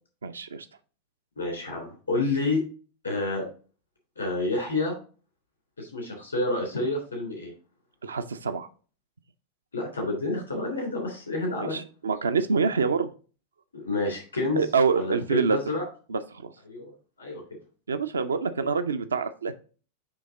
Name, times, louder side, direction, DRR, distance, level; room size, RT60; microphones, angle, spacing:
voice 1, 0.2-0.7 8.0-8.7 11.6-13.1 14.5-15.6 16.1-16.5 17.9-19.5, right 5 dB, 70° right, 10 dB, 0.5 m, -26 dB
voice 2, 1.4-2.6 3.0-3.4 4.2-4.9 5.8-7.5 9.7-11.8 13.7-14.6 14.9-15.8 16.7-16.9 17.2-17.4, left 2 dB, 80° left, 1 dB, 3.1 m, -29 dB
9.0 x 3.4 x 3.7 m, 0.37 s
figure-of-eight pair, 90°, 0 cm